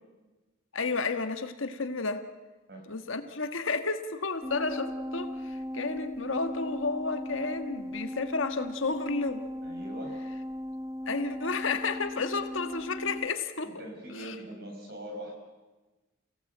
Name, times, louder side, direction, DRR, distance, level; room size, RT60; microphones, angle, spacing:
voice 1, 0.7-2.2 2.9-9.5 11.1-13.7 14.2-14.3, left 4 dB, 75° left, 8 dB, 1.5 m, -32 dB
sound 1, 4.4-13.3, left 1 dB, 15° right, 0.8 m, -38 dB
voice 2, 9.6-10.2 13.6-15.3, right 1 dB, 50° right, 2 dB, 5.2 m, -42 dB
28.5 x 17.0 x 7.9 m, 1.2 s
head